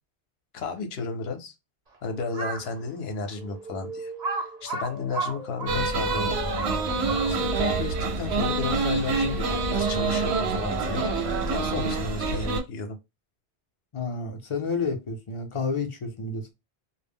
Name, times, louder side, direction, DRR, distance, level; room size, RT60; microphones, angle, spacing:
voice 1, 0.5-1.5 2.0-6.4 7.3-11.0 11.5-13.0, left 4 dB, 70° left, 0.8 m, -33 dB
sound 1, 2.1-2.9 3.4-11.4, right 3 dB, 15° right, 0.5 m, -38 dB
Crow, 2.2-2.7 3.3-3.4 4.2-7.6, right 4 dB, 45° right, 0.8 m, -33 dB
sound 2, 5.7-12.6, right 3 dB, 75° right, 0.8 m, -27 dB
voice 2, 13.9-16.5, left 4 dB, 40° left, 0.4 m, -30 dB
2.2 x 2.0 x 3.4 m
omnidirectional pair, 1.1 m